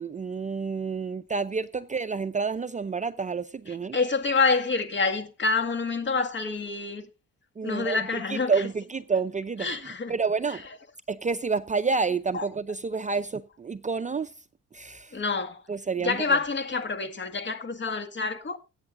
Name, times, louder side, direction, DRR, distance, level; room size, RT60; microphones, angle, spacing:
voice 1, 0.0-4.0 7.6-10.6 11.1-14.3 14.7-15.2 15.7-16.4, right 5 dB, 25° right, 0.6 m, -29 dB
voice 2, 3.9-7.1 7.6-8.5 9.6-10.1 12.3-12.4 15.1-15.6 16.0-18.6, left 4 dB, 40° left, 2.0 m, -27 dB
21.0 x 8.8 x 2.6 m
cardioid pair, 90°, 30 cm